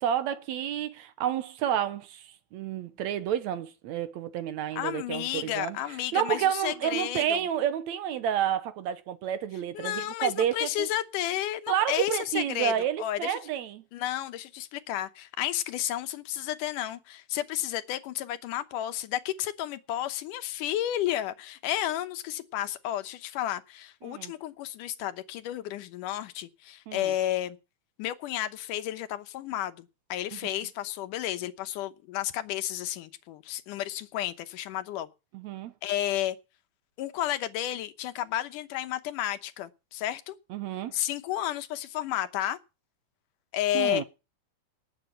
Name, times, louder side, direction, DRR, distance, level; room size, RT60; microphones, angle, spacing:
voice 1, 0.0-10.9 11.7-13.8 24.0-24.3 26.9-27.1 30.3-30.4 35.3-35.7 40.5-41.0 43.7-44.0, right 10 dB, 75° right, 2.0 m, -30 dB
voice 2, 4.7-7.4 9.7-12.7 13.0-13.4 13.9-27.6 28.0-35.1 35.8-36.4 37.0-40.4 40.9-42.6 43.5-44.0, left 12 dB, 90° left, 2.6 m, -32 dB
19.0 x 7.4 x 5.7 m
omnidirectional pair, 3.6 m